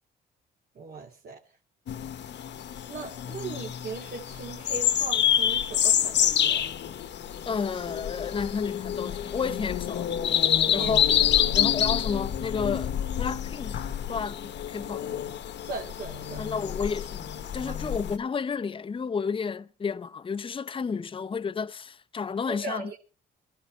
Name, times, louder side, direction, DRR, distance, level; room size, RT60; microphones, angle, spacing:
voice 1, 0.8-1.4 2.9-6.7 10.6-10.9 11.4-11.6 15.6-16.5 17.7-17.8 22.5-23.0, right 4 dB, 50° right, 2.2 m, -39 dB
sound 1, 1.9-18.2, left 9 dB, 65° left, 1.1 m, -27 dB
voice 2, 7.5-10.1 10.7-11.0 11.5-12.9 13.2-15.1 16.4-22.9, left 5 dB, 25° left, 0.6 m, -31 dB
22.5 x 14.0 x 3.2 m
cardioid pair, 90°, 20 cm